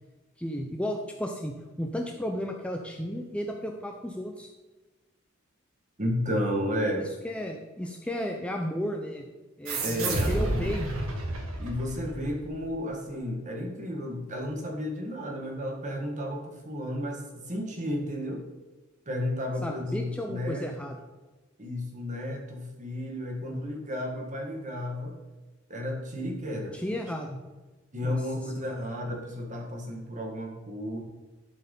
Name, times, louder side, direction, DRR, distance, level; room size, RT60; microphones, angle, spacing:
voice 1, 0.4-4.5 7.0-9.3 9.6-10.9 19.6-21.0 23.4-23.8 26.7-27.4 28.0-28.2 28.4-28.8, equal, 5° left, 2 dB, 0.6 m, -34 dB
voice 2, 6.0-7.1 9.8-10.7 11.6-18.4 19.1-20.9 21.6-25.2 25.7-26.8 27.9-31.0, left 1 dB, 35° right, 1 dB, 1.8 m, -33 dB
sound 1, 9.7-12.7, right 2 dB, 90° right, 1.7 m, -31 dB
11.5 x 4.6 x 5.4 m, 1.2 s
head